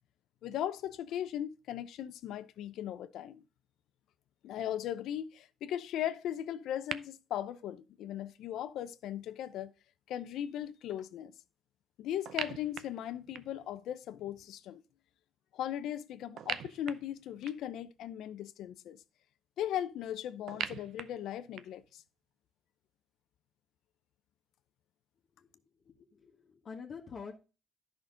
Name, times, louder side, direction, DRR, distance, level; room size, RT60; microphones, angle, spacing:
voice 1, 0.4-3.4 4.4-9.7 10.1-11.3 12.0-14.8 15.5-19.0 19.6-22.0, left 11 dB, 85° left, 0.7 m, -38 dB
sound 1, 6.9-7.0 12.3-13.7 16.4-17.8 20.5-21.9, right 9 dB, 75° right, 0.6 m, -40 dB
voice 2, 25.8-27.4, left 5 dB, 50° left, 1.5 m, -46 dB
11.0 x 5.9 x 3.8 m
cardioid pair, 90°, 0 cm